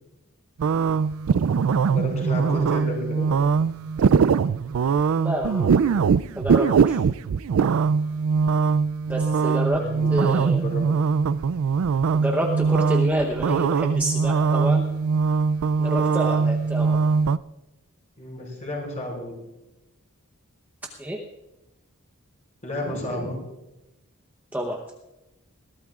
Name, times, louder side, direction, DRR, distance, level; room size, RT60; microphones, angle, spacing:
sound 1, 0.6-17.4, right 5 dB, 65° right, 0.3 m, -22 dB
voice 1, 1.9-3.3 9.8-10.8 18.2-19.5 22.6-23.3, left 1 dB, 35° left, -2 dB, 5.4 m, -32 dB
voice 2, 5.2-6.0 6.4-7.0 9.1-10.6 12.1-14.9 15.8-17.0 21.0-21.3 24.5-24.8, equal, 10° right, 0 dB, 0.9 m, -28 dB
21.5 x 15.5 x 2.4 m, 0.95 s
head